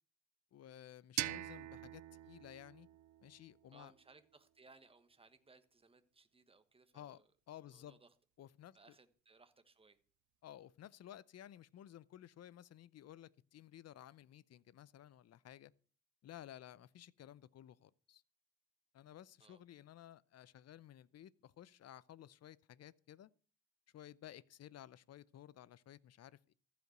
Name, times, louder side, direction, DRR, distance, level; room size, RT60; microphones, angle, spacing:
voice 1, 0.5-2.9 3.2-3.9 6.9-8.0 8.4-8.8 10.4-15.7 16.2-18.2 18.9-23.3 23.9-26.5, left 11 dB, 55° left, 0.7 m, -55 dB
sound 1, 1.2-4.0, right 15 dB, 70° right, 0.6 m, -44 dB
voice 2, 3.7-7.3 7.7-8.1 8.7-10.0 19.4-19.6, right 3 dB, 20° right, 1.3 m, -65 dB
14.5 x 5.2 x 7.9 m
cardioid pair, 90°, 30 cm